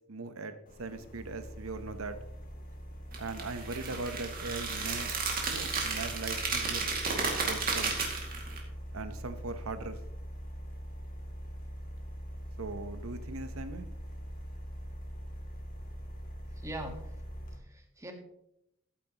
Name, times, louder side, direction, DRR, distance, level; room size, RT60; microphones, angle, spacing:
voice 1, 0.1-2.2 3.2-5.2 5.5-6.9 7.5-8.0 8.9-10.0 12.6-13.9, right 3 dB, 80° right, 10 dB, 0.9 m, -40 dB
sound 1, 0.7-17.6, equal, 40° left, 2.0 m, -43 dB
sound 2, 3.1-8.6, right 4 dB, 45° right, 2.3 m, -33 dB
voice 2, 16.5-17.1 17.5-18.1, right 1 dB, 15° right, 4 dB, 1.5 m, -42 dB
13.5 x 8.7 x 3.0 m, 0.78 s
head